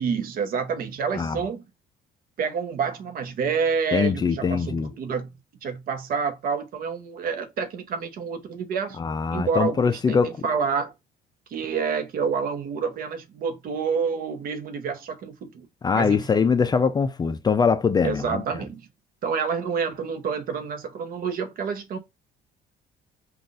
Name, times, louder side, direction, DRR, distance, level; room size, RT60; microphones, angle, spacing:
voice 1, 0.0-1.6 2.4-9.0 9.3-10.9 11.5-15.7 15.9-16.4 18.0-18.9 19.2-22.0, right 6 dB, 60° right, 0.8 m, -28 dB
voice 2, 3.9-4.9 9.0-10.3 15.8-18.4, left 5 dB, 25° left, 0.4 m, -22 dB
3.8 x 2.4 x 2.4 m
cardioid pair, 110°, 17 cm